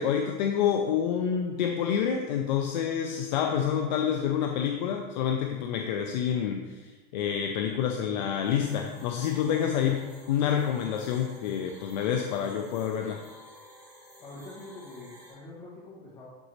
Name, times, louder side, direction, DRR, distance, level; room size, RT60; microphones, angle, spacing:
voice 1, 0.0-13.2, left 8 dB, 50° left, 4 dB, 0.5 m, -28 dB
sound 1, 8.4-15.3, equal, 15° right, 2.4 m, -52 dB
voice 2, 14.2-16.3, left 2 dB, 15° left, -6 dB, 1.9 m, -45 dB
11.5 x 4.1 x 3.1 m, 1.3 s
supercardioid pair, 180°, 30 cm